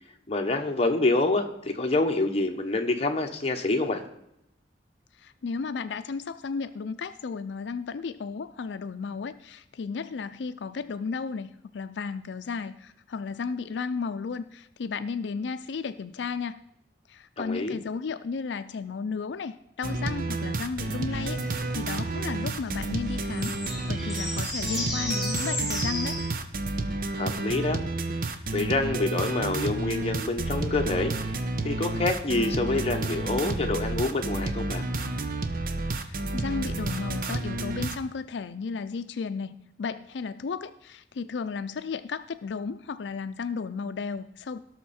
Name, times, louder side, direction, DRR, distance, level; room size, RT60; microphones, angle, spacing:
voice 1, 0.3-4.0 17.4-17.8 27.1-27.8 28.5-34.8, left 2 dB, 35° left, 3 dB, 1.1 m, -27 dB
voice 2, 5.2-16.6 17.1-26.2 36.0-44.6, left 5 dB, 90° left, 11 dB, 0.4 m, -34 dB
sound 1, 19.8-38.0, right 2 dB, 55° right, 0.9 m, -30 dB
sound 2, 21.1-26.3, left 1 dB, ahead, 3.5 m, -35 dB
17.0 x 6.4 x 4.3 m, 0.80 s
head